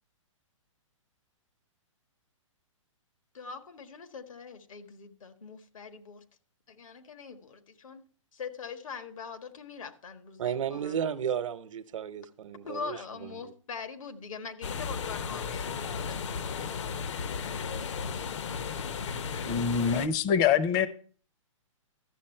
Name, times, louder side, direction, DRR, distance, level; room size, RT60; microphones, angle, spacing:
voice 1, 3.3-6.2 6.7-8.0 8.3-10.9 12.6-16.2, left 5 dB, 80° left, 1.5 m, -42 dB
voice 2, 10.4-13.5, right 8 dB, 70° right, 0.9 m, -33 dB
sound 1, 14.6-20.1, left 6 dB, 60° left, 0.8 m, -35 dB
voice 3, 19.4-20.9, left 7 dB, 20° left, 0.6 m, -25 dB
12.5 x 7.1 x 4.3 m
hypercardioid pair, 155°, 17 cm